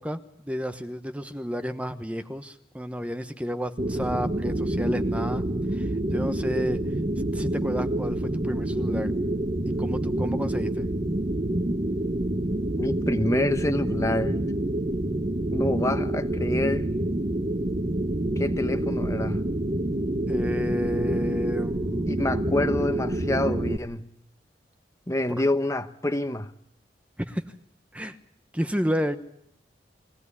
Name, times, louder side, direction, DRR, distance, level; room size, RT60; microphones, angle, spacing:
voice 1, 0.0-5.4 5.7-6.8 7.2-9.1 9.8-10.9 20.3-22.1 27.3-27.4 27.9-28.2 28.5-29.2, equal, 5° right, 1.0 m, -31 dB
sound 1, 3.8-23.8, right 1 dB, 35° right, 0.9 m, -27 dB
voice 2, 12.8-14.4 15.5-16.9 18.4-19.4 22.1-24.0 25.1-26.5, left 1 dB, 15° left, 0.9 m, -27 dB
22.5 x 16.5 x 9.8 m
head